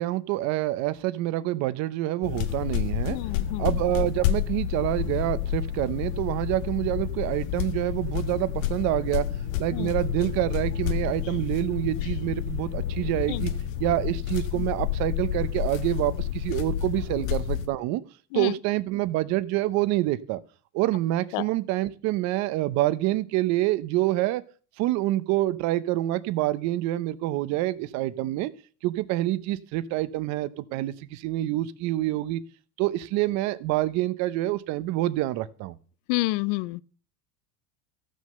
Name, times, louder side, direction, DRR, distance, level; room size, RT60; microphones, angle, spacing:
voice 1, 0.0-3.2 3.6-9.3 9.6-13.5 13.8-18.0 18.3-20.4 20.7-24.4 24.8-28.5 28.8-32.4 32.8-35.7, right 16 dB, 45° right, 0.8 m, -27 dB
sound 1, 2.2-17.7, left 12 dB, 85° left, 1.5 m, -29 dB
voice 2, 3.1-3.6 9.7-9.9 13.3-13.4 14.6-14.7 18.3-18.5 21.3-21.4 36.1-36.8, left 20 dB, 65° left, 0.6 m, -28 dB
14.5 x 6.4 x 6.7 m
cardioid pair, 170°, 38 cm